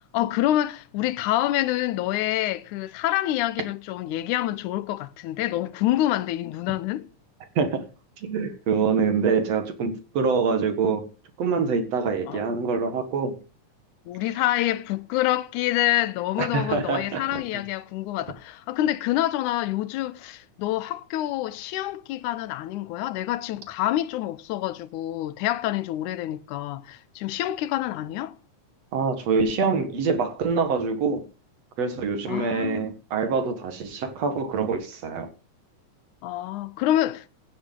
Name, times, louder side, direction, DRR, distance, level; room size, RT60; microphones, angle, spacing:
voice 1, 0.1-7.1 12.3-12.4 14.1-28.4 32.3-32.9 36.2-37.3, left 14 dB, 85° left, 2.2 m, -27 dB
voice 2, 8.2-11.1 11.4-13.4 16.4-17.6 28.9-31.2 31.8-35.3, right 5 dB, 60° right, 2.5 m, -25 dB
16.5 x 8.2 x 3.8 m
omnidirectional pair, 3.4 m